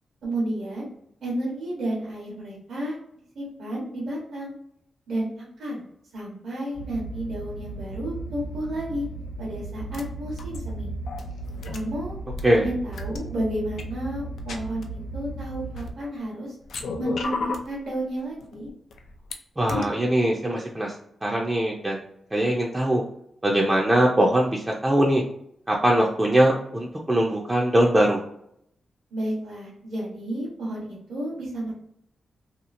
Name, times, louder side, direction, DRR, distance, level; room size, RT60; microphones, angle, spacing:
voice 1, 0.2-0.9 1.2-3.0 3.3-4.5 5.1-5.3 5.6-5.8 6.1-9.1 9.4-10.9 11.7-12.2 12.5-14.8 15.1-16.6 17.0-18.7 29.1-31.7, right 1 dB, 80° right, -6 dB, 1.1 m, -31 dB
sound 1, 6.7-15.9, right 2 dB, 45° left, 0.7 m, -36 dB
sound 2, 9.9-10.0 10.4-12.4 12.9-13.2 13.8-13.9 14.4-14.8 15.6-16.2 16.6-17.7 18.4-19.3 19.7-19.8, left 3 dB, 80° left, 0.4 m, -33 dB
voice 2, 19.6-20.9 21.2-22.0 22.3-23.0 23.4-25.2 25.7-28.2, right 1 dB, 15° right, -3 dB, 0.4 m, -21 dB
2.8 x 2.4 x 2.5 m, 0.73 s
cardioid pair, 85°, 0 cm